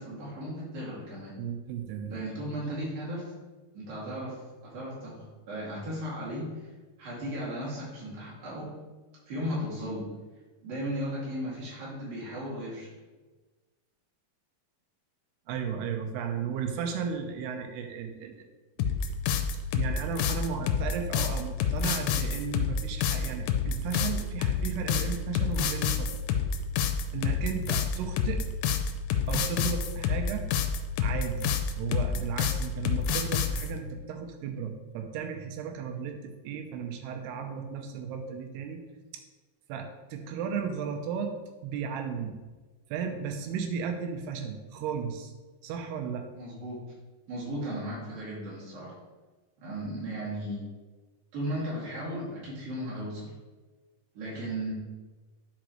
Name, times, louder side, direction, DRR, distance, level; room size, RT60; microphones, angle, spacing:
voice 1, 0.0-1.4 2.1-3.3 3.7-4.4 4.6-6.7 7.0-8.7 9.3-10.1 10.6-12.9 46.4-46.8 47.3-49.0 49.6-50.7 51.3-53.3 54.2-54.7, equal, 60° right, -7 dB, 3.9 m, -36 dB
voice 2, 1.4-2.2 15.5-18.4 18.8-19.1 19.7-26.2 27.1-28.4 29.3-30.5 31.0-31.5 31.8-38.8 39.1-39.2 39.7-41.3 41.6-42.4 42.9-45.3 45.6-46.3, right 6 dB, 85° right, 4 dB, 2.8 m, -35 dB
sound 1, 18.8-33.7, left 7 dB, 85° left, 2.6 m, -28 dB
11.0 x 5.1 x 3.1 m, 1.2 s
omnidirectional pair, 4.6 m